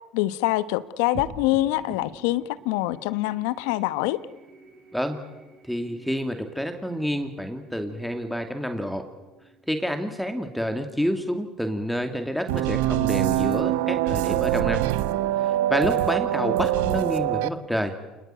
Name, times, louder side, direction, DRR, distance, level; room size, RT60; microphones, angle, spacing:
voice 1, 0.1-4.2, left 16 dB, 80° left, 15 dB, 1.1 m, -25 dB
sound 1, 1.1-11.8, right 3 dB, 60° right, 7.9 m, -47 dB
voice 2, 5.6-9.0 9.7-14.8 15.4-17.9, equal, ahead, 6 dB, 2.5 m, -28 dB
sound 2, 12.5-17.5, right 14 dB, 80° right, 1.0 m, -24 dB
28.0 x 20.5 x 9.2 m, 1.1 s
supercardioid pair, 80°, 0 cm